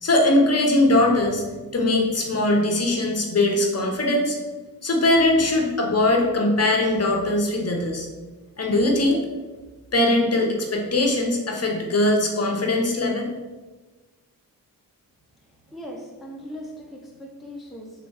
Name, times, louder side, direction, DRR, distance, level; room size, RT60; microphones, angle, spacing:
voice 1, 0.0-1.4 1.7-4.4 4.8-8.1 8.6-9.2 9.9-13.3, left 2 dB, 45° left, 0 dB, 0.8 m, -21 dB
voice 2, 15.7-18.1, equal, ahead, -1 dB, 0.6 m, -39 dB
3.6 x 3.0 x 4.6 m, 1.2 s
wide cardioid pair, 100°, 35 cm